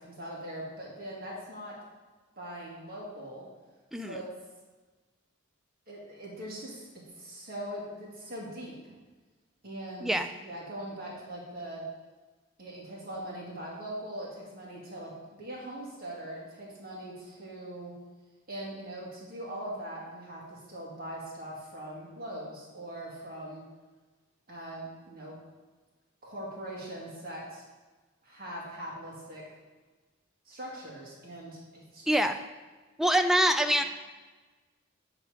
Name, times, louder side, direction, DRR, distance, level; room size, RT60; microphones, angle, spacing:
voice 1, 0.0-1.8 2.4-3.5 4.0-4.3 5.9-6.9 7.2-8.8 9.6-10.1 10.4-11.9 12.6-15.1 15.4-17.9 18.5-23.6 24.5-25.4 26.2-27.6 28.2-29.4 30.5-32.1, right 1 dB, 50° right, -4 dB, 2.3 m, -41 dB
voice 2, 32.1-32.4 33.0-33.8, right 1 dB, ahead, 7 dB, 0.4 m, -25 dB
7.7 x 4.8 x 5.1 m, 1.3 s
head